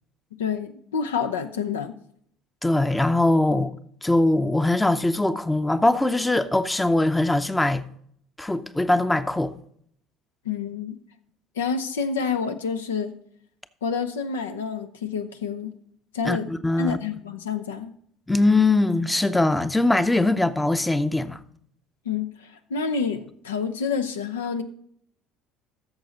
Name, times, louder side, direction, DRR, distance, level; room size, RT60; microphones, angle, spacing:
voice 1, 0.4-2.0 10.4-11.0 11.6-13.2 13.8-15.7 16.1-16.5 16.8-17.9 22.1-24.6, left 6 dB, 85° left, 0.6 m, -28 dB
voice 2, 2.6-3.7 4.0-7.8 8.4-9.5 16.2-17.0 18.3-21.4, left 2 dB, 10° left, 0.6 m, -21 dB
13.5 x 6.6 x 4.0 m
hypercardioid pair, 65°, 0 cm